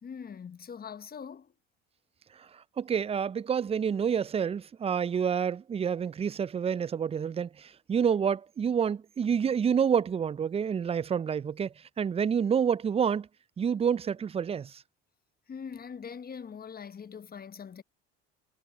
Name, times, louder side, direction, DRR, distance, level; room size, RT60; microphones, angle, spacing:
voice 1, 0.0-1.5 15.5-17.8, left 6 dB, 30° left, 1.1 m, -42 dB
voice 2, 2.4-13.3 13.6-14.8, right 7 dB, 20° right, 0.4 m, -28 dB
hypercardioid pair, 70°, 32 cm